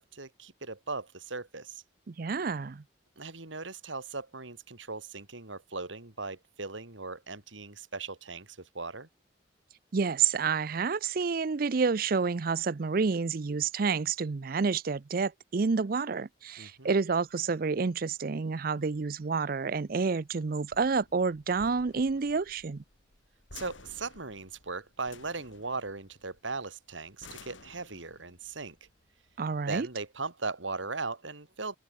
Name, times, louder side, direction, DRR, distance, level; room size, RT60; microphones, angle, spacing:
voice 1, 0.0-1.8 3.2-9.1 16.6-16.9 23.5-28.8 29.7-31.8, right 3 dB, 85° right, 3.0 m, -38 dB
voice 2, 2.1-2.8 9.9-22.8 29.4-29.9, right 5 dB, 50° right, 0.5 m, -29 dB
sound 1, 17.1-30.1, left 4 dB, 90° left, 5.7 m, -55 dB
head